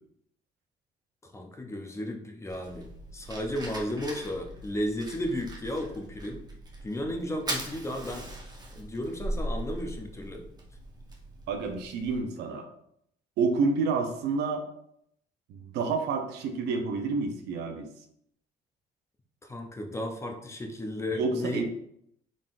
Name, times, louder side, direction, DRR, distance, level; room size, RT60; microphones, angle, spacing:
voice 1, 1.2-2.9 3.1-6.4 6.8-8.3 8.8-10.4 19.4-21.6, left 1 dB, 15° left, 4 dB, 0.6 m, -34 dB
Fire, 2.5-12.2, right 1 dB, 25° right, 1.0 m, -40 dB
voice 2, 11.5-12.7 13.4-14.6 15.5-17.9 21.1-21.6, right 4 dB, 85° right, 5 dB, 0.7 m, -29 dB
3.8 x 3.7 x 2.5 m, 0.71 s
cardioid pair, 110°, 17 cm